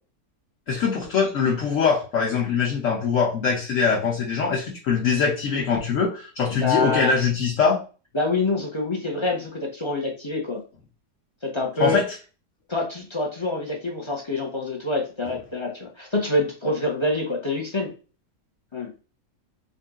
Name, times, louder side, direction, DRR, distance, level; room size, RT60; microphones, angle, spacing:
voice 1, 0.7-7.8 11.8-12.0, left 5 dB, 55° left, -2 dB, 1.1 m, -22 dB
voice 2, 6.5-7.1 8.1-10.6 11.4-12.0 12.7-17.9 18.7-18.9, left 2 dB, 30° left, -1 dB, 0.6 m, -26 dB
3.8 x 2.7 x 3.5 m, 0.35 s
omnidirectional pair, 1.7 m